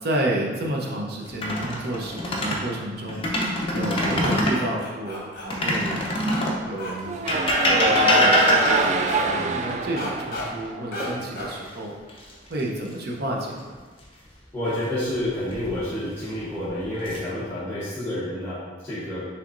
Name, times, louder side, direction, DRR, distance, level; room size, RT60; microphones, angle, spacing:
voice 1, 0.0-3.3 3.7-6.1 6.7-12.0 12.5-13.8, right 1 dB, 60° right, -1 dB, 0.8 m, -31 dB
sound 1, 1.3-2.6 3.1-4.6 5.5-6.6 7.3-9.1 11.0-11.7 12.1-12.3 15.2-15.8 16.5-17.2, left 1 dB, 30° left, 0.7 m, -23 dB
sound 2, 3.9-5.5 6.3-6.4 6.8-6.9 8.1-8.2 8.5-9.2 10.0-10.4 10.9-11.1 11.3-11.5, left 1 dB, 50° left, 1.2 m, -33 dB
sound 3, 7.0-11.2, right 3 dB, 40° right, 0.3 m, -26 dB
voice 2, 14.5-19.3, left 1 dB, 15° left, -12 dB, 1.0 m, -29 dB
5.8 x 3.3 x 2.6 m, 1.4 s
head